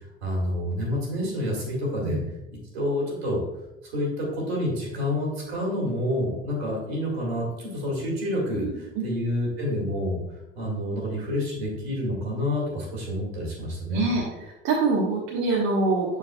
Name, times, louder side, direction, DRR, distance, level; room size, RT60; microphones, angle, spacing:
voice 1, 0.2-2.2 2.7-3.4 3.8-10.2 10.6-14.1, left 1 dB, 70° right, -2 dB, 2.3 m, -28 dB
voice 2, 8.6-9.1 13.9-14.2 14.6-16.2, right 3 dB, 55° right, -3 dB, 1.2 m, -24 dB
7.3 x 6.5 x 2.3 m, 0.92 s
figure-of-eight pair, 60°, 32 cm